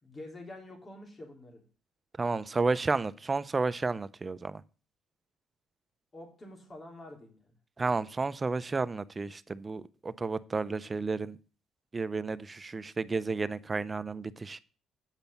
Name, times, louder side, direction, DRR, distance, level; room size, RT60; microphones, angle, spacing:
voice 1, 0.0-1.6 6.1-7.5, left 1 dB, 25° left, 3.4 m, -47 dB
voice 2, 2.2-4.6 7.8-11.4 11.9-14.6, right 3 dB, 25° right, 0.6 m, -32 dB
9.0 x 5.2 x 6.9 m
cardioid pair, 105°, 0 cm